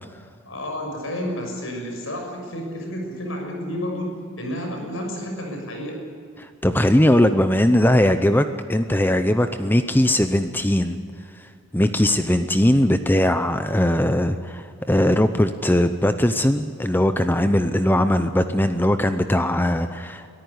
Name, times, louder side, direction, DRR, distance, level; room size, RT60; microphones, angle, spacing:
voice 1, 0.4-6.0, equal, 70° left, 2 dB, 6.4 m, -30 dB
voice 2, 6.4-11.0 11.4-11.5 11.7-20.3, left 1 dB, 10° left, 10 dB, 0.7 m, -20 dB
23.5 x 14.0 x 9.7 m, 2.3 s
head